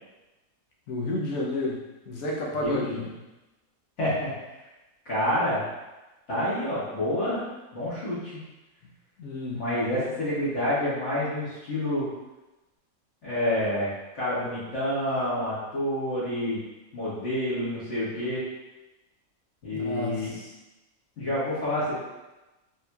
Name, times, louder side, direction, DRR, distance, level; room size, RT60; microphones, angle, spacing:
voice 1, 0.9-1.8 2.1-3.1 9.2-9.7 19.7-20.4, left 2 dB, 75° left, -3 dB, 1.1 m, -31 dB
voice 2, 2.5-3.0 4.0-4.3 5.1-5.6 6.3-7.4 7.7-8.4 9.5-12.1 13.2-16.6 16.9-18.4 19.6-20.3 21.2-22.0, left 1 dB, 55° left, -11 dB, 1.9 m, -28 dB
4.2 x 2.7 x 2.3 m, 1.1 s
omnidirectional pair, 1.5 m